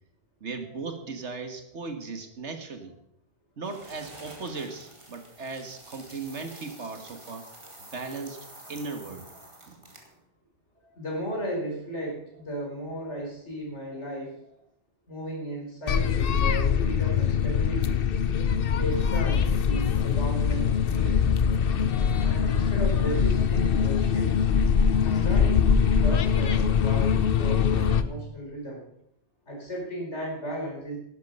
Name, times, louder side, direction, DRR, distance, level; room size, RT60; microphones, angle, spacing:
voice 1, 0.4-2.9 3.6-7.5 7.8-9.3 9.7-9.9, right 4 dB, 75° right, 7 dB, 1.8 m, -37 dB
sound 1, 3.6-10.2, right 1 dB, 25° right, 2.4 m, -48 dB
voice 2, 10.8-14.5 15.1-18.0 18.8-21.2 22.2-24.5 25.0-28.8 29.4-31.0, right 1 dB, 75° left, -1 dB, 5.0 m, -35 dB
sound 2, 15.9-28.0, left 7 dB, 55° left, 0.9 m, -23 dB
11.5 x 11.5 x 5.5 m, 0.75 s
omnidirectional pair, 1.2 m